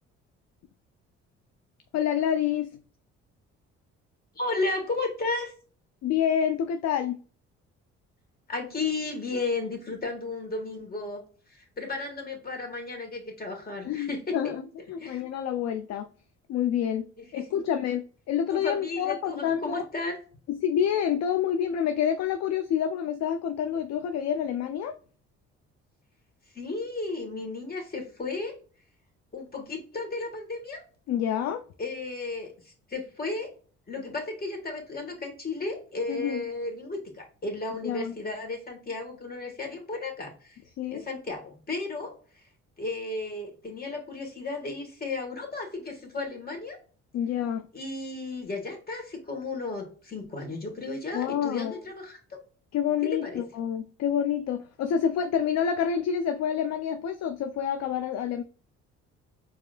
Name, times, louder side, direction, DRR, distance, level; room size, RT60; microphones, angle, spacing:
voice 1, 1.9-2.8 6.0-7.2 13.8-16.1 16.5-17.1 17.3-19.8 20.5-25.0 31.1-31.6 36.1-36.4 37.8-38.1 40.8-41.1 47.1-47.7 51.1-51.8 52.7-58.4, left 8 dB, 50° left, 0.5 m, -28 dB
voice 2, 4.3-5.5 8.5-11.2 11.5-14.4 15.0-15.2 17.2-17.4 18.5-20.2 26.5-28.6 29.3-30.8 31.8-33.5 33.9-40.6 40.9-42.1 42.8-46.8 47.7-52.4 53.2-53.4, left 3 dB, 30° left, 1.7 m, -34 dB
4.7 x 2.8 x 2.4 m
hypercardioid pair, 55°, 33 cm